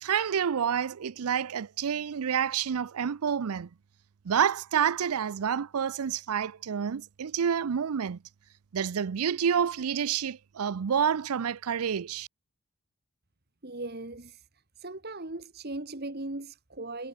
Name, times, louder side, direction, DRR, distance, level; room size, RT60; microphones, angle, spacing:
voice 1, 0.0-3.7 4.2-8.2 8.7-12.3, right 7 dB, 90° right, 0.5 m, -28 dB
voice 2, 13.6-14.4 14.8-17.1, right 2 dB, 45° right, 1.7 m, -38 dB
head